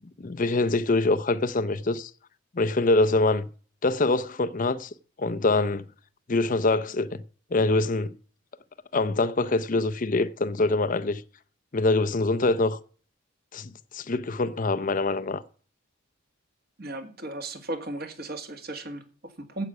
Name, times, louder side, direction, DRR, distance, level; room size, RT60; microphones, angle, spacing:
voice 1, 0.2-2.1 2.5-3.5 3.8-4.9 5.2-5.8 6.3-7.2 7.5-8.1 8.9-11.2 11.7-12.8 13.5-15.4, left 2 dB, 40° left, 0.6 m, -24 dB
voice 2, 16.8-19.7, right 2 dB, 45° right, 1.8 m, -36 dB
9.5 x 7.9 x 8.2 m
head